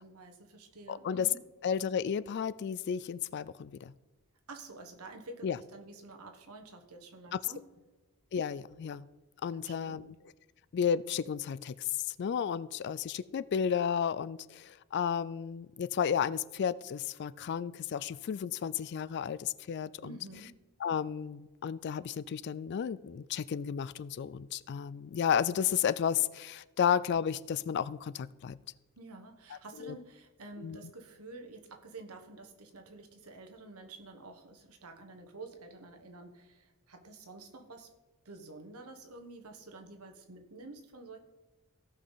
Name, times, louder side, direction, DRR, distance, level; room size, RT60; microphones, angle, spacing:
voice 1, 0.0-1.4 4.5-7.6 9.5-10.1 20.0-20.6 29.0-37.9 38.2-41.2, right 3 dB, 80° right, 5 dB, 1.2 m, -49 dB
voice 2, 0.9-1.3 1.6-3.9 5.4-5.6 7.3-7.4 8.3-9.1 9.4-10.2 10.7-20.2 20.8-28.6 29.8-29.9 30.6-30.8, left 8 dB, 50° left, 18 dB, 0.3 m, -32 dB
16.5 x 5.6 x 4.0 m, 1.2 s
head